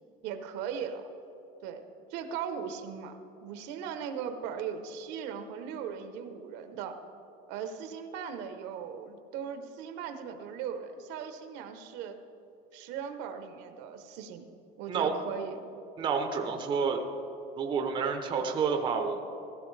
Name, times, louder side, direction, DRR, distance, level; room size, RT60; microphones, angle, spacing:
voice 1, 0.2-1.0 1.6-1.8 2.1-3.1 3.4-7.0 7.5-12.2 12.7-14.5 14.8-15.6, right 7 dB, 60° right, 8 dB, 0.9 m, -38 dB
voice 2, 16.0-17.0 17.6-19.2, right 5 dB, 25° right, 4 dB, 0.6 m, -29 dB
15.5 x 13.0 x 3.2 m, 3.0 s
cardioid pair, 175°, 20 cm